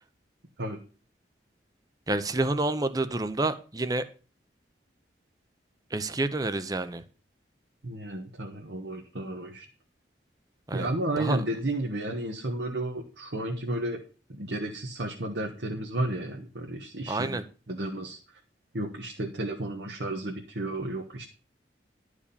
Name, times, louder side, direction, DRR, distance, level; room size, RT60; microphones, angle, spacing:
voice 1, 2.1-4.0 5.9-7.0 10.7-10.9 11.2-11.4 17.1-17.4, right 2 dB, 20° right, 11 dB, 0.7 m, -28 dB
voice 2, 7.8-9.7 10.7-14.0 14.3-17.4 17.7-18.2 18.7-21.3, right 1 dB, 75° right, 1 dB, 1.3 m, -32 dB
11.5 x 4.9 x 7.0 m, 0.37 s
head